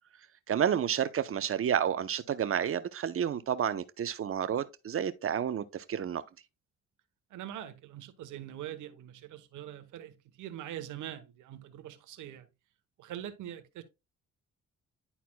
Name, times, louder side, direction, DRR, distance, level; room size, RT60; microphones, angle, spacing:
voice 1, 0.5-6.2, right 9 dB, 45° right, 0.8 m, -30 dB
voice 2, 7.3-12.5 13.0-13.8, right 11 dB, 85° right, 1.1 m, -43 dB
11.0 x 4.2 x 2.2 m
cardioid pair, 90°, 30 cm